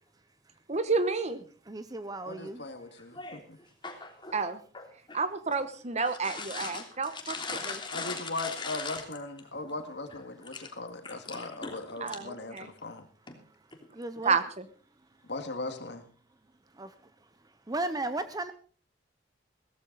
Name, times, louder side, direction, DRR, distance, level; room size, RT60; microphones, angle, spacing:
voice 1, 0.7-1.4 4.3-4.6 5.1-7.3 7.7-7.8 12.0-12.7 14.2-14.6, right 4 dB, 40° right, 12 dB, 1.0 m, -30 dB
voice 2, 1.7-2.6 13.9-14.4 16.8-16.9 17.7-18.5, right 2 dB, 20° right, 12 dB, 0.7 m, -35 dB
voice 3, 2.3-3.6 7.9-13.1 15.3-16.1, left 2 dB, 65° left, 7 dB, 2.1 m, -39 dB
voice 4, 3.0-3.5 3.8-4.4 4.7-5.2 6.0-9.0 9.6-9.7 10.5-10.7 11.0-11.8 12.1-12.2, left 4 dB, 25° left, 3 dB, 3.2 m, -39 dB
17.0 x 14.0 x 4.0 m, 0.40 s
head